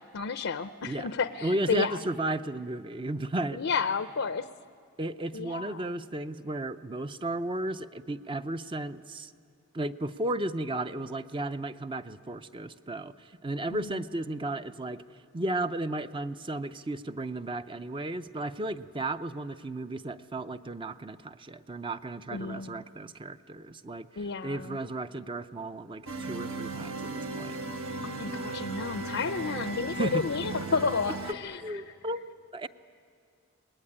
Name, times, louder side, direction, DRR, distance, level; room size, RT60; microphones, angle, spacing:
voice 1, 0.1-2.0 3.5-4.5 5.3-5.9 13.7-14.0 22.3-22.8 24.2-24.8 28.0-31.6, left 5 dB, 60° left, 11 dB, 0.5 m, -31 dB
voice 2, 1.4-3.6 5.0-9.3 9.7-15.0 15.3-27.6 29.9-30.2 31.3-32.7, right 1 dB, 25° right, 11 dB, 0.5 m, -34 dB
sound 1, 26.1-31.3, right 3 dB, 65° right, 1.5 m, -36 dB
24.5 x 19.5 x 9.8 m, 2.3 s
head